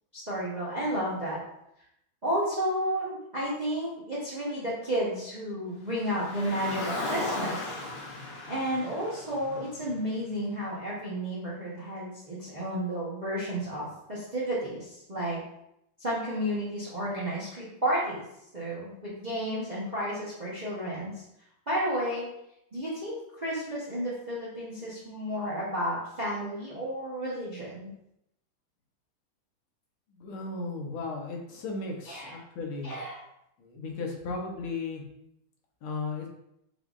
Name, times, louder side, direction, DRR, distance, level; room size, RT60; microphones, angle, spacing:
voice 1, 0.1-1.4 2.2-7.6 8.5-15.4 16.0-18.2 18.5-21.2 21.7-22.3 22.7-27.9 32.0-32.3 32.8-33.2, equal, 40° right, -8 dB, 0.6 m, -32 dB
Car, 6.0-10.4, left 2 dB, 55° left, 0.6 m, -36 dB
voice 2, 30.1-32.9 33.6-35.0 35.8-36.3, left 3 dB, 85° left, 0 dB, 1.8 m, -35 dB
5.4 x 3.6 x 2.5 m, 0.81 s
omnidirectional pair, 2.3 m